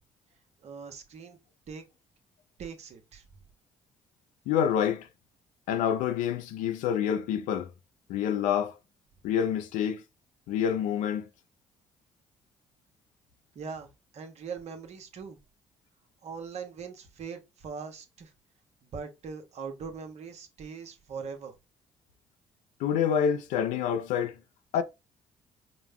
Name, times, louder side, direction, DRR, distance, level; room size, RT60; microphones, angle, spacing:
voice 1, 0.6-1.4 1.7-1.8 2.6-3.2 13.5-15.4 16.2-18.3 18.8-21.5, right 5 dB, 60° right, 1.1 m, -41 dB
voice 2, 4.5-5.1 5.7-7.7 8.1-8.8 9.2-10.0 10.5-11.3 22.8-24.4 24.7-24.8, left 8 dB, 80° left, 0.6 m, -27 dB
5.1 x 2.2 x 3.6 m
hypercardioid pair, 55°, 13 cm